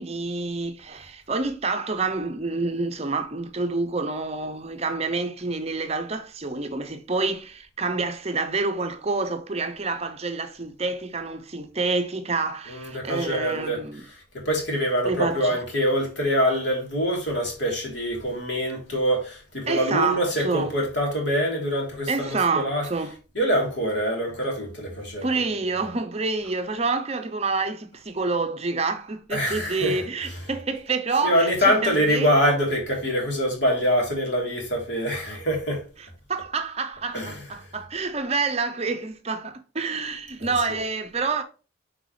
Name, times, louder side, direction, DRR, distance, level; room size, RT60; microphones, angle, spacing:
voice 1, 0.0-14.0 15.1-15.6 19.7-20.7 22.1-23.1 25.2-32.3 36.3-41.4, right 3 dB, 30° right, 0.6 m, -28 dB
voice 2, 12.7-13.8 14.3-22.8 23.3-25.3 29.3-30.3 31.2-35.8 37.1-37.4 40.4-40.8, equal, 60° left, 3.4 m, -25 dB
8.0 x 4.8 x 3.2 m
head